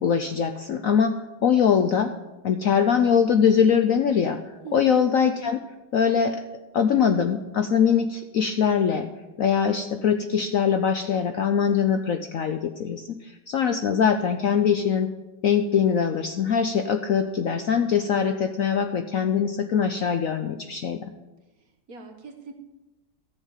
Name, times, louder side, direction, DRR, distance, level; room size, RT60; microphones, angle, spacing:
voice 1, 0.0-2.1 2.4-4.4 4.7-5.6 5.9-6.4 6.7-9.1 9.4-15.1 15.4-21.1, left 7 dB, 65° left, 7 dB, 0.9 m, -22 dB
voice 2, 4.6-5.0 21.6-22.5, right 4 dB, 50° right, 4 dB, 1.8 m, -42 dB
14.0 x 7.3 x 7.4 m, 1.1 s
omnidirectional pair, 2.0 m